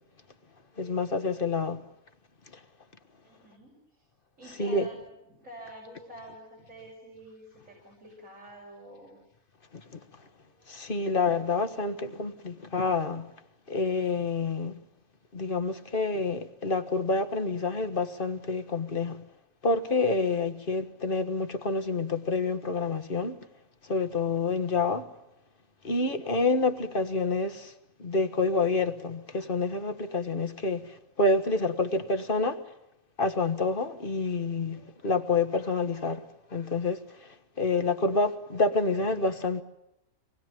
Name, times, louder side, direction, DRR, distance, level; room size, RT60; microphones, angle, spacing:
voice 1, 0.8-1.8 4.6-4.9 10.7-13.3 13.7-14.8 15.3-19.2 19.6-23.4 23.9-25.1 25.8-27.7 28.0-32.6 33.2-36.2 36.5-37.3 37.6-39.6, left 3 dB, 40° left, 1.5 m, -28 dB
voice 2, 3.2-4.1 4.4-5.0 5.3-9.2, right 1 dB, 65° right, 6.5 m, -48 dB
25.5 x 20.5 x 9.1 m
omnidirectional pair, 1.5 m